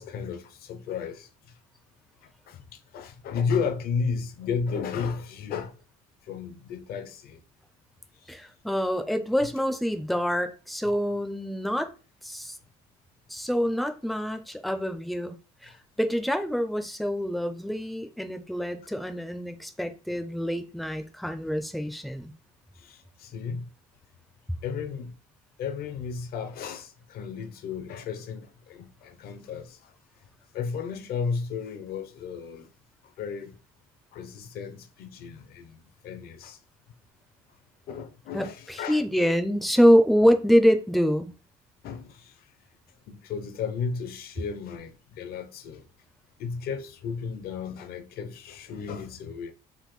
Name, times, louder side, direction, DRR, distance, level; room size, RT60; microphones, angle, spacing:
voice 1, 0.0-1.6 2.2-5.8 6.2-7.4 8.2-8.4 15.6-15.8 22.7-23.7 24.6-25.1 25.6-29.9 30.2-30.3 30.5-32.7 33.0-33.6 34.1-36.6 37.9-39.0 41.8-42.5 43.1-45.9 46.4-49.5, left 6 dB, 65° left, 0.5 m, -34 dB
voice 2, 8.3-11.9 12.2-12.6 13.3-15.4 15.6-22.3 38.3-41.3, equal, ahead, 0.4 m, -25 dB
3.5 x 2.1 x 3.1 m
cardioid pair, 110°, 17 cm